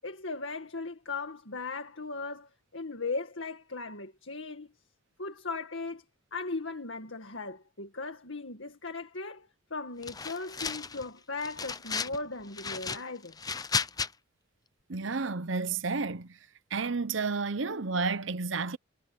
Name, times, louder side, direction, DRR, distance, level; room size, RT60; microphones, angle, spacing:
voice 1, 0.0-4.7 5.2-6.0 6.3-13.3, left 3 dB, 70° left, 2.0 m, -38 dB
sound 1, 10.0-11.0 11.4-12.2 12.5-14.1, left 5 dB, 20° left, 0.7 m, -34 dB
voice 2, 14.9-16.3 16.7-18.8, right 4 dB, 65° right, 0.8 m, -31 dB
head